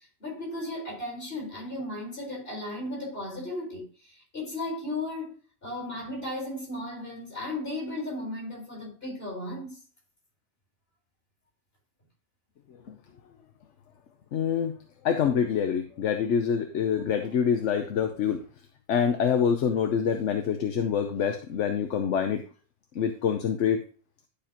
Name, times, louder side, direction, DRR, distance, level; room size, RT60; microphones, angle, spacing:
voice 1, 0.2-5.3 5.6-9.8, left 1 dB, 55° left, 4.5 m, -35 dB
voice 2, 14.3-14.7 15.0-18.4 18.9-22.4 22.9-23.8, left 7 dB, 80° left, 1.1 m, -26 dB
11.5 x 5.0 x 2.9 m
omnidirectional pair, 1.2 m